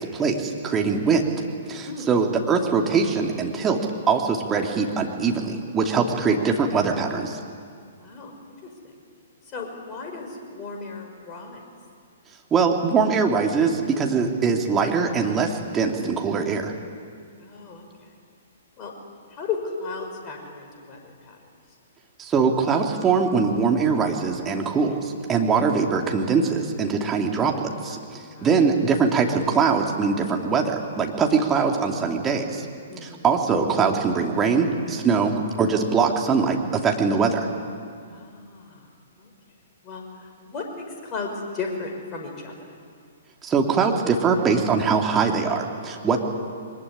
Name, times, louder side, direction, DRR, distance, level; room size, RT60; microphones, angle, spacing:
voice 1, 0.0-1.4 1.7-3.8 4.1-7.4 12.5-16.7 22.2-32.7 33.0-37.4 43.4-46.2, right 5 dB, 20° right, 2 dB, 2.8 m, -22 dB
voice 2, 1.0-1.3 1.8-2.1 8.0-8.9 9.5-11.6 17.4-18.1 18.8-18.9 19.3-21.4 28.3-28.5 32.9-33.3 38.1-38.9 39.2-39.3 39.8-42.8, left 4 dB, 25° left, 1 dB, 5.7 m, -35 dB
23.0 x 20.5 x 10.0 m, 2.2 s
figure-of-eight pair, 115°, 0 cm